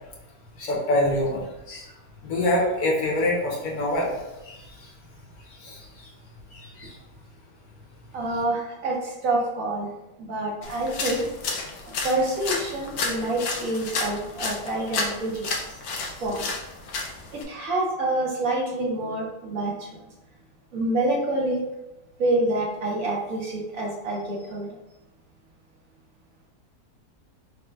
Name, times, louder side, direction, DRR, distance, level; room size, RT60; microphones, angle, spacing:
voice 1, 0.6-1.9 2.2-4.1 4.4-4.9 5.5-6.1 6.5-6.9, left 1 dB, 65° left, -3 dB, 1.3 m, -26 dB
voice 2, 8.1-9.9 10.2-11.3 12.0-15.4 16.2-16.5 17.3-19.7 20.7-21.6 22.2-24.7, right 2 dB, 60° right, -2 dB, 1.1 m, -27 dB
sound 1, 10.6-17.4, left 3 dB, 90° left, 1.3 m, -32 dB
3.7 x 2.1 x 4.4 m, 0.98 s
omnidirectional pair, 1.8 m